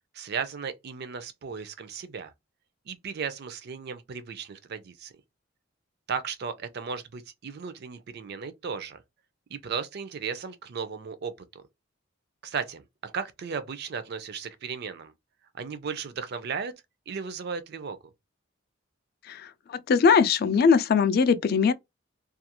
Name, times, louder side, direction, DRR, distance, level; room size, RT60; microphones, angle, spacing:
voice 1, 0.1-2.3 2.9-5.1 6.1-9.0 9.5-11.6 12.4-15.1 15.6-16.7 17.1-18.0, right 6 dB, 55° right, 0.4 m, -35 dB
voice 2, 19.7-21.7, left 5 dB, 50° left, 0.3 m, -21 dB
2.4 x 2.3 x 2.8 m
head